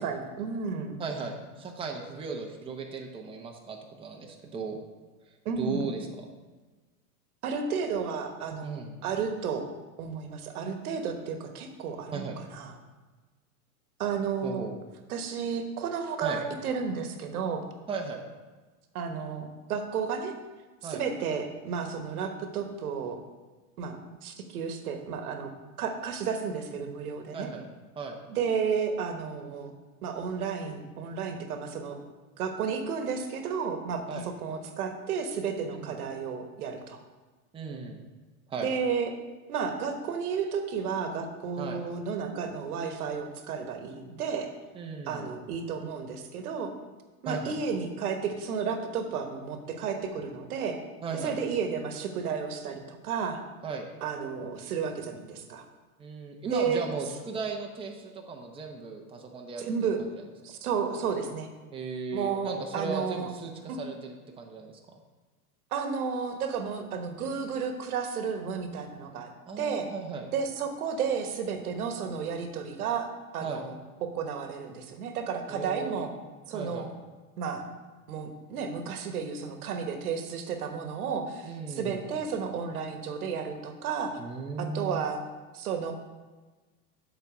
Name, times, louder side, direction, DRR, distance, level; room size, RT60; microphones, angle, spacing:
voice 1, 0.0-1.0 5.4-5.9 7.4-9.7 10.0-12.7 14.0-14.6 15.1-17.6 18.9-20.4 20.8-23.2 23.8-25.5 25.8-27.5 28.3-29.7 30.0-32.0 32.4-37.0 38.6-39.1 39.5-44.5 45.1-46.7 47.2-50.8 51.2-53.4 54.0-55.6 56.4-56.9 59.6-60.0 60.4-61.5 62.1-63.3 63.7-63.8 65.7-69.3 69.6-69.9 70.3-73.7 74.0-76.1 76.5-76.9 77.4-77.6 78.1-84.2 84.6-85.2 85.5-85.9, right 6 dB, 75° right, 6 dB, 1.2 m, -32 dB
voice 2, 1.0-4.8 5.6-6.3 8.6-8.9 12.1-12.4 14.4-14.8 16.2-16.4 17.9-18.2 20.8-21.0 27.3-27.6 28.0-28.2 34.1-34.3 35.7-36.0 37.5-38.0 38.5-38.7 41.6-41.8 44.7-45.3 47.3-47.6 51.0-51.4 53.6-53.9 56.0-60.2 61.7-64.8 69.5-70.3 73.4-73.6 75.5-76.1 76.5-76.9 81.4-82.0 84.2-85.0, right 4 dB, 10° right, 1 dB, 0.8 m, -36 dB
7.1 x 4.2 x 6.6 m, 1.3 s
hypercardioid pair, 115°, 45 cm